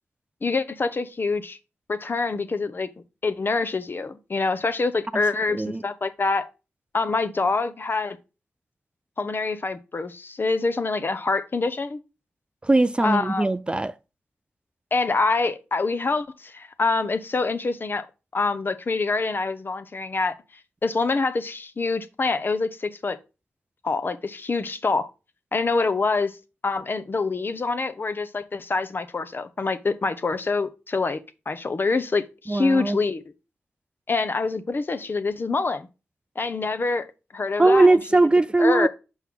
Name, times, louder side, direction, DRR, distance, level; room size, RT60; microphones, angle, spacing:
voice 1, 0.4-1.6 1.9-2.9 3.2-6.5 6.9-8.2 9.2-12.0 13.0-13.5 14.9-18.1 18.3-20.3 20.8-23.2 23.8-25.1 25.5-26.4 26.6-31.2 31.5-33.2 34.1-35.9 36.4-37.1 37.3-38.0 38.6-38.9, left 3 dB, 45° left, 0.8 m, -25 dB
voice 2, 12.6-13.9 32.5-33.0 37.6-38.9, right 2 dB, 20° right, 0.3 m, -19 dB
6.2 x 5.6 x 3.7 m
cardioid pair, 60°, 5 cm